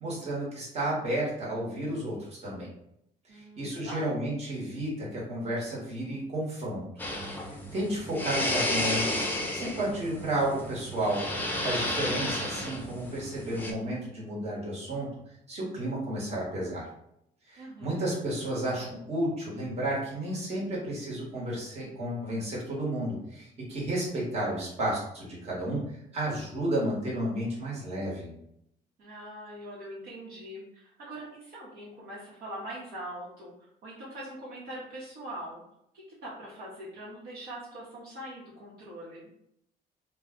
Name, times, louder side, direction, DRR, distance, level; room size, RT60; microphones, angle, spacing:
voice 1, 0.0-2.7 3.3-6.8 7.4-9.3 9.5-11.2 11.6-15.1 15.5-16.8 17.5-25.8 26.1-28.3, right 1 dB, 40° right, -5 dB, 1.2 m, -32 dB
voice 2, 3.3-4.1 17.6-18.0 29.0-33.5 33.8-35.6 36.1-39.3, right 1 dB, 65° right, -6 dB, 1.0 m, -42 dB
sound 1, 7.0-13.7, left 1 dB, 10° left, 0.6 m, -32 dB
2.3 x 2.2 x 3.6 m, 0.76 s
cardioid pair, 110°, 17 cm